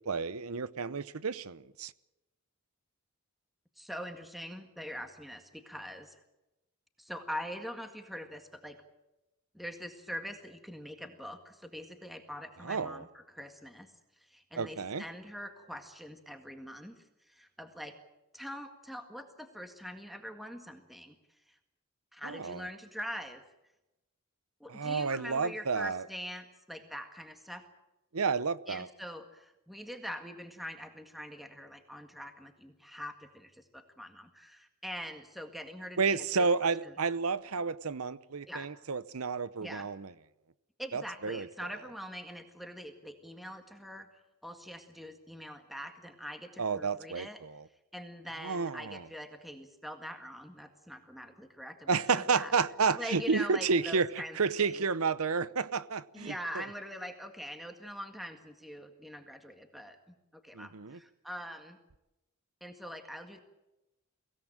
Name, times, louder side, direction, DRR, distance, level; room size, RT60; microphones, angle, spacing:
voice 1, 0.1-1.9 12.6-13.0 14.6-15.0 22.2-22.7 24.7-26.0 28.1-28.9 36.0-40.1 40.9-41.5 46.6-47.6 48.4-49.0 51.9-56.6 60.5-61.0, right 5 dB, 90° right, 0.9 m, -31 dB
voice 2, 3.8-6.2 7.0-8.8 9.5-13.9 14.3-17.9 18.3-21.1 21.5-21.6 22.1-23.4 24.6-27.6 28.7-36.5 36.8-36.9 38.5-38.7 39.6-39.9 40.8-47.4 47.9-52.5 53.0-54.8 56.1-60.0 60.3-61.8 62.6-63.4, equal, ahead, 1.8 m, -43 dB
24.0 x 17.0 x 8.9 m
head